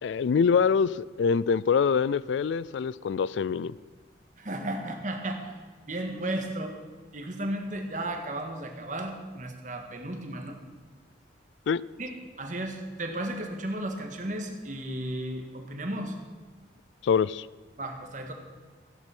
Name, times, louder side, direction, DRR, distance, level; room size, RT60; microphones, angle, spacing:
voice 1, 0.0-3.7 11.7-11.8 17.0-17.5, left 6 dB, 75° left, 21 dB, 0.3 m, -25 dB
voice 2, 4.4-5.5 5.9-6.8 7.1-10.6 12.0-12.1 12.4-16.1 17.8-18.3, right 1 dB, 40° right, 4 dB, 1.8 m, -34 dB
15.0 x 10.5 x 6.0 m, 1.5 s
head